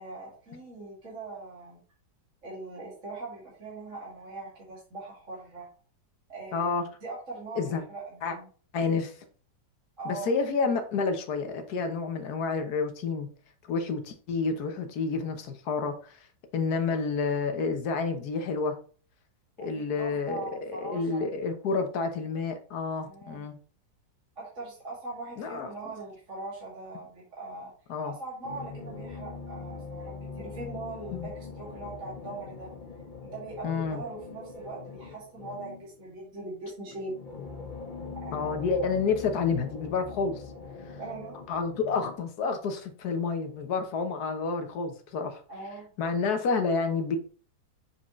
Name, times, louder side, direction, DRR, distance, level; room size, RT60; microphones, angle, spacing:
voice 1, 0.0-1.8 2.4-5.7 6.3-6.7 7.0-8.5 10.0-10.3 19.6-21.2 23.0-23.4 24.4-27.7 28.0-32.7 33.2-37.2 38.2-38.7 41.0-41.4 45.5-45.9, right 2 dB, 40° right, -6 dB, 2.7 m, -41 dB
voice 2, 6.5-6.8 7.6-7.8 8.2-8.3 8.7-9.1 10.0-13.3 13.7-16.2 16.5-18.8 19.6-20.4 20.7-23.6 25.4-25.7 27.9-28.1 31.1-31.3 33.6-34.0 38.3-40.4 40.9-41.0 41.5-45.4 46.0-47.2, left 4 dB, 60° left, 6 dB, 1.4 m, -29 dB
sound 1, 28.4-36.0 36.9-42.2, left 4 dB, 40° left, 0.7 m, -42 dB
7.1 x 4.9 x 3.1 m, 0.41 s
omnidirectional pair, 2.1 m